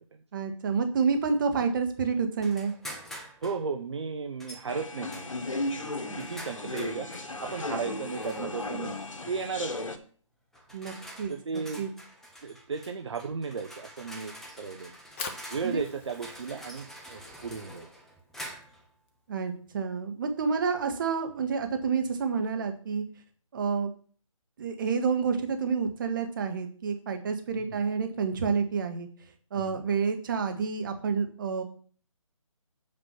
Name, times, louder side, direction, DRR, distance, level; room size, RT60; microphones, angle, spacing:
voice 1, 0.3-2.7 10.7-11.9 15.6-15.8 19.3-23.0 23.5-23.9 24.6-29.1 29.5-31.6, right 5 dB, 40° right, 5 dB, 1.7 m, -29 dB
sound 1, 2.4-3.6 4.4-4.7 5.1-7.3 8.1-8.7 9.7-9.9 10.5-18.9, equal, ahead, 0.9 m, -46 dB
voice 2, 3.4-5.3 5.8-7.1 7.4-8.9 9.3-9.9 11.3-11.8 12.4-15.0 15.5-17.9 27.6-27.8 29.6-29.8, right 5 dB, 55° right, 5 dB, 1.1 m, -35 dB
sound 2, 4.7-10.0, left 2 dB, 75° left, 1.7 m, -35 dB
Fire, 14.9-21.1, left 5 dB, 25° left, 1.1 m, -46 dB
8.8 x 5.2 x 6.0 m, 0.43 s
figure-of-eight pair, 150°, 17 cm